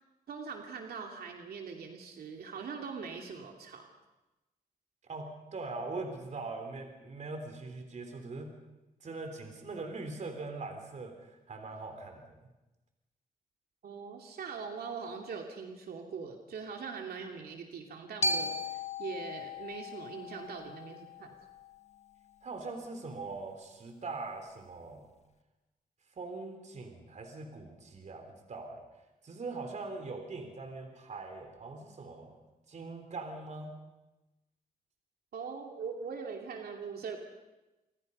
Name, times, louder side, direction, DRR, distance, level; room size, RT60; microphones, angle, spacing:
voice 1, 0.3-3.9 13.8-21.3 35.3-37.2, right 5 dB, 85° right, 2 dB, 2.7 m, -42 dB
voice 2, 5.1-8.5 9.0-12.4 22.4-25.1 26.2-28.8 29.2-32.4 32.7-33.7, right 3 dB, 50° right, 5 dB, 3.7 m, -42 dB
Glockenspiel, 18.2-22.3, left 2 dB, 45° left, 1.3 m, -37 dB
29.0 x 25.0 x 5.5 m, 1.0 s
wide cardioid pair, 125°, 16 cm